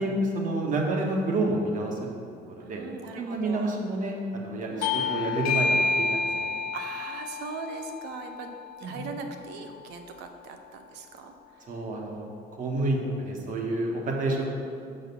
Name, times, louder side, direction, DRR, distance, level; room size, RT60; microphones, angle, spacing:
voice 1, 0.0-2.0 2.6-2.8 3.1-6.4 8.8-9.1 11.7-12.2 12.6-14.5, right 2 dB, 50° right, 0 dB, 1.4 m, -29 dB
voice 2, 2.6-3.8 4.7-4.9 6.7-8.5 8.8-11.6 12.8-12.9 14.3-14.4, right 5 dB, 90° right, 6 dB, 0.7 m, -40 dB
Bell / Doorbell, 4.8-9.9, left 4 dB, 60° left, 0.5 m, -30 dB
6.6 x 5.8 x 5.4 m, 2.5 s
cardioid pair, 110°, 17 cm